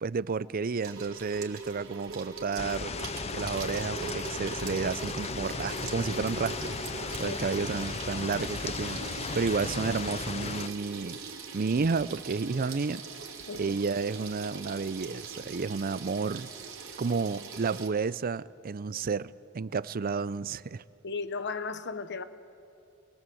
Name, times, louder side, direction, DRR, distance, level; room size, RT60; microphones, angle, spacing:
voice 1, 0.0-2.9 3.3-6.8 7.2-11.2 11.5-13.0 13.6-16.5 17.0-20.8, right 4 dB, 40° right, 0.5 m, -31 dB
Water tap faucet / Sink (filling or washing), 0.8-17.9, right 4 dB, 65° right, 2.7 m, -41 dB
sound 1, 2.6-10.7, left 5 dB, 30° left, 0.5 m, -36 dB
voice 2, 21.0-22.2, left 4 dB, 55° left, 1.0 m, -35 dB
27.0 x 21.5 x 7.8 m
head